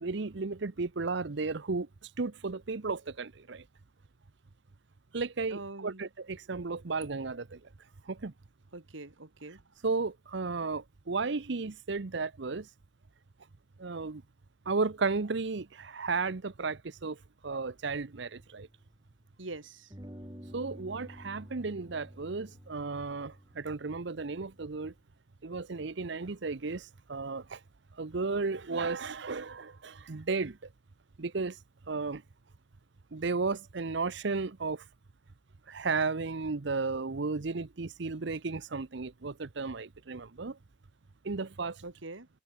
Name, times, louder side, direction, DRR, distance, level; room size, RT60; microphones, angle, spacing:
voice 1, 0.0-1.9 2.2-3.6 5.1-7.6 8.1-8.3 9.8-12.7 13.8-14.2 14.7-17.2 17.4-18.7 20.5-24.9 25.4-27.6 28.0-30.6 31.2-31.6 31.9-32.2 33.1-34.8 35.7-40.6 41.2-41.8, right 4 dB, 65° right, 0.8 m, -34 dB
voice 2, 5.5-6.0 8.7-9.6 19.4-19.9 41.8-42.3, right 2 dB, 80° right, 2.3 m, -44 dB
sound 1, 18.2-19.4 19.9-25.1, equal, 20° right, 5.3 m, -51 dB
head